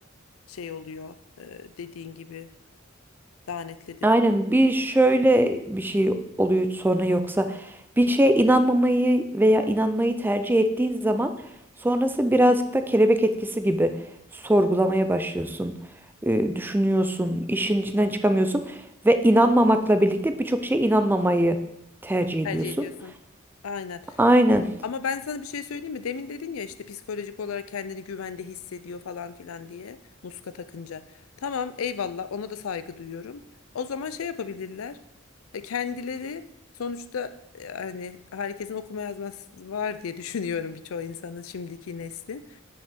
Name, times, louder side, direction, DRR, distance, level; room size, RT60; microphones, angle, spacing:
voice 1, 0.5-2.5 3.5-4.1 4.5-4.7 22.4-23.1 23.6-24.0 24.8-30.0 30.2-31.0 31.4-33.4 33.7-35.0 35.5-36.5 36.8-42.6, left 6 dB, 85° left, 13 dB, 0.5 m, -34 dB
voice 2, 4.0-7.6 8.0-11.3 11.8-13.9 14.4-15.7 16.2-21.6 22.0-22.6 24.2-24.7, right 1 dB, 10° right, 9 dB, 0.4 m, -21 dB
5.5 x 5.4 x 5.8 m, 0.81 s
head